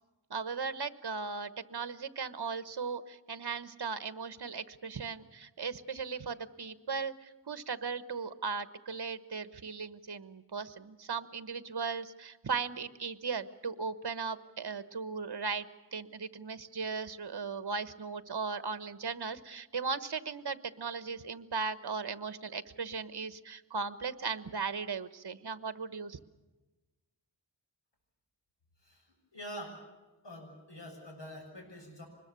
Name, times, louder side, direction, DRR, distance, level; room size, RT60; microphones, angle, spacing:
voice 1, 0.3-15.6 15.9-26.2, right 5 dB, 60° right, 13 dB, 1.2 m, -37 dB
voice 2, 29.3-29.8 30.2-32.1, equal, 70° left, 2 dB, 6.9 m, -45 dB
25.0 x 21.0 x 6.9 m, 1.1 s
wide cardioid pair, 65°, 44 cm